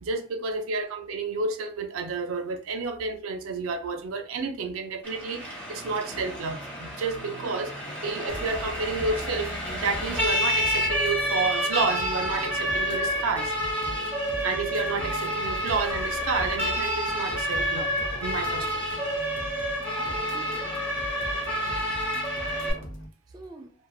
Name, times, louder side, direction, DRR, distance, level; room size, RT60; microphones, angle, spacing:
voice 1, 0.0-7.7 8.0-13.5 14.4-17.9 18.2-18.8, right 4 dB, 90° right, 0.5 m, -30 dB
Siren, 5.0-22.7, equal, 10° left, 0.9 m, -29 dB
voice 2, 7.4-7.8 19.8-20.8 23.3-23.7, right 1 dB, 20° right, 0.4 m, -46 dB
sound 1, 8.3-23.1, equal, 65° left, 0.7 m, -40 dB
3.1 x 2.0 x 2.3 m
head